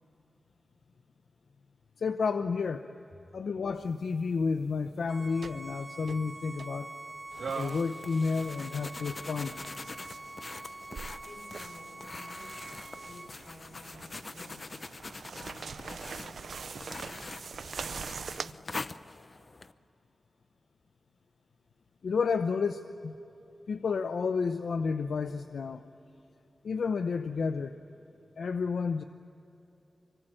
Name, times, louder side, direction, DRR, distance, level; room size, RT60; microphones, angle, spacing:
voice 1, 2.0-2.9 3.3-6.9 7.5-9.6 22.0-23.1 23.7-25.8 26.6-27.7 28.4-29.0, left 5 dB, 85° left, 9 dB, 0.7 m, -31 dB
sound 1, 3.8-4.0 5.4-5.7 6.1-6.2 6.6-6.7 7.3-8.2 8.4-10.3 10.8-18.5, right 5 dB, 80° right, 0.5 m, -42 dB
Bowed string instrument, 5.1-13.3, right 2 dB, 25° right, 1.3 m, -45 dB
sound 2, 7.3-19.7, left 3 dB, 40° left, 0.7 m, -44 dB
voice 2, 11.2-14.7 15.3-18.8, left 1 dB, 60° left, 2 dB, 6.6 m, -53 dB
25.5 x 24.5 x 9.0 m, 3.0 s
wide cardioid pair, 130°, 0 cm